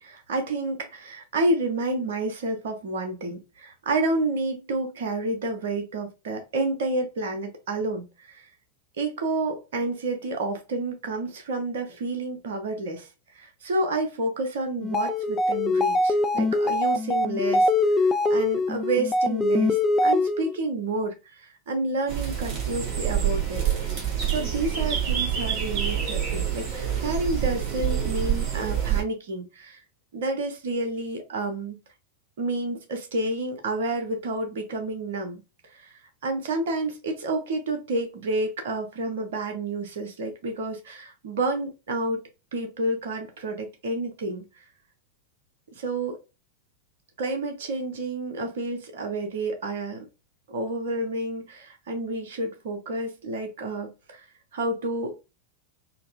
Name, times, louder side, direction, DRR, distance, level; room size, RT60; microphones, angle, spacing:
voice 1, 0.0-8.5 9.0-23.7 24.3-29.8 30.1-31.8 32.4-35.4 35.7-35.9 36.2-42.2 42.5-44.6 45.7-46.2 47.2-50.1 50.5-54.2 54.5-55.1, right 2 dB, 60° right, 0.7 m, -30 dB
sound 1, 14.8-20.6, left 2 dB, 20° left, 0.3 m, -23 dB
sound 2, 22.1-29.0, right 10 dB, 40° right, 1.4 m, -27 dB
4.1 x 2.0 x 2.4 m
figure-of-eight pair, 90°, 0 cm